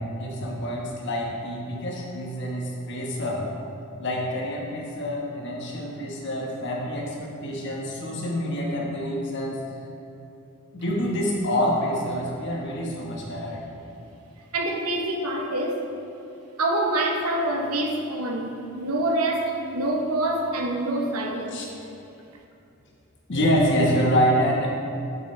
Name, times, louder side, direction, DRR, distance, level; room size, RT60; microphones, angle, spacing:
voice 1, 0.0-3.4 4.0-9.6 10.7-13.6 21.5-21.6 23.3-24.7, equal, 55° left, -2 dB, 1.2 m, -26 dB
voice 2, 14.5-15.9 16.6-21.6, right 1 dB, 80° right, 2 dB, 0.9 m, -26 dB
8.2 x 7.2 x 3.2 m, 2.7 s
head